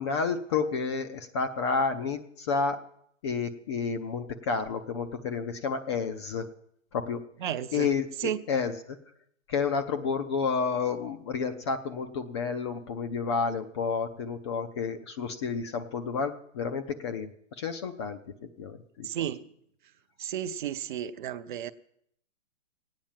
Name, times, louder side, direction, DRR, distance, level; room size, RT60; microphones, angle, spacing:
voice 1, 0.0-2.8 3.2-6.5 6.9-7.2 7.7-9.0 9.5-17.3 17.6-18.2 18.6-19.1, left 5 dB, 20° left, 0.5 m, -30 dB
voice 2, 7.4-7.9 8.2-8.4 19.0-19.4 20.2-21.7, right 10 dB, 40° right, 0.6 m, -33 dB
16.5 x 8.9 x 7.3 m
hypercardioid pair, 145°, 39 cm